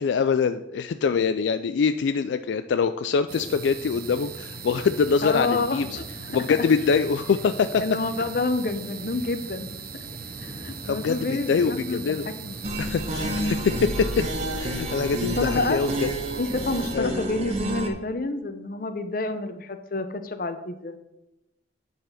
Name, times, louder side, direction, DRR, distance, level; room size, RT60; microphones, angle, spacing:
voice 1, 0.0-6.0 6.3-7.8 10.8-12.3 12.8-14.2 14.6-16.1 16.9-17.2, left 5 dB, 75° left, 10 dB, 0.3 m, -24 dB
sound 1, 3.3-17.0, right 5 dB, 50° right, 0.5 m, -39 dB
sound 2, 3.8-13.4, equal, 15° left, 1.0 m, -46 dB
voice 2, 5.2-5.8 7.8-10.0 10.4-12.0 12.4-12.6 15.4-15.8 16.4-21.0, left 2 dB, 50° left, 9 dB, 0.7 m, -28 dB
sound 3, 12.6-17.9, right 1 dB, 35° right, 1.0 m, -29 dB
9.3 x 4.1 x 5.7 m, 0.91 s
head